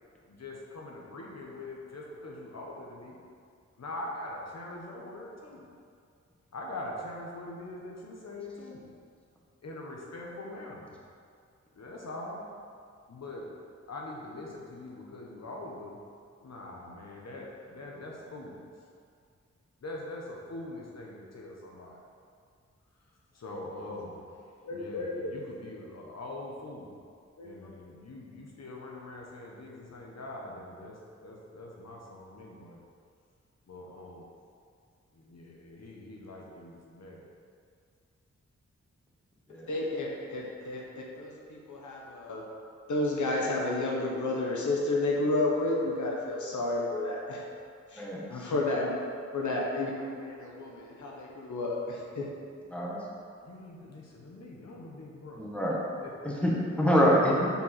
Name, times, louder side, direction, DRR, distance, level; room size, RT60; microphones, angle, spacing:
voice 1, 0.3-3.2 3.8-5.6 6.5-8.9 9.6-11.0 11.8-12.5 13.1-13.5 13.9-16.0 16.4-18.6 19.8-22.0 23.3-26.9 27.4-32.8 33.7-34.3 35.1-37.2 53.4-55.4 56.0-56.3, left 2 dB, 65° left, -2 dB, 1.2 m, -43 dB
voice 2, 24.6-25.3 27.4-27.7 39.5-40.8 41.2-42.4 42.9-47.4 47.9-48.0 48.3-48.9 49.3-52.2, left 2 dB, 85° left, -2 dB, 1.2 m, -31 dB
voice 3, 48.0-48.5 52.7-53.0 55.4-55.8 56.2-57.5, equal, 5° left, -4 dB, 1.7 m, -26 dB
7.3 x 4.6 x 5.8 m, 2.3 s
wide cardioid pair, 85°, 29 cm